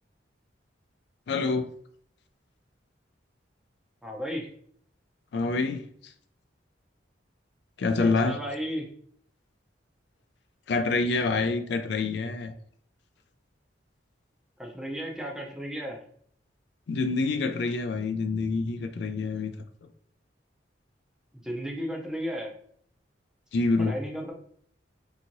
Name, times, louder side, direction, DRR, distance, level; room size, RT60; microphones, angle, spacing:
voice 1, 1.3-1.7 5.3-6.1 7.8-8.4 10.7-12.5 16.9-19.5 23.5-24.0, left 3 dB, 65° left, 0.3 m, -27 dB
voice 2, 4.0-4.5 8.0-8.9 14.6-16.0 21.4-22.5 23.8-24.3, equal, 5° right, 0.5 m, -34 dB
2.9 x 2.7 x 2.6 m
head